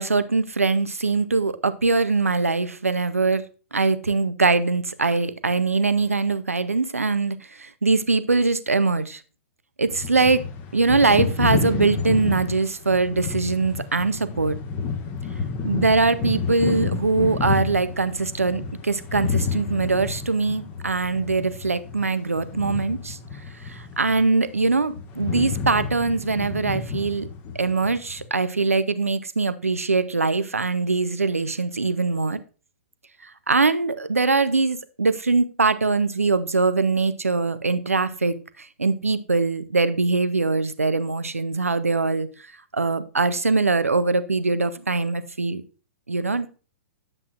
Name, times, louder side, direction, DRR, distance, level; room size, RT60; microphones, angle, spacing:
voice 1, 0.0-3.4 3.7-9.2 9.8-10.4 10.7-14.6 15.6-23.2 23.6-27.3 27.5-32.4 33.2-42.3 42.7-45.6 46.1-46.6, right 3 dB, 85° right, 14 dB, 0.7 m, -22 dB
sound 1, 9.9-24.2 24.5-28.2, left 5 dB, 30° left, 1.6 m, -30 dB
9.8 x 7.7 x 2.5 m, 0.35 s
figure-of-eight pair, 110°, 8 cm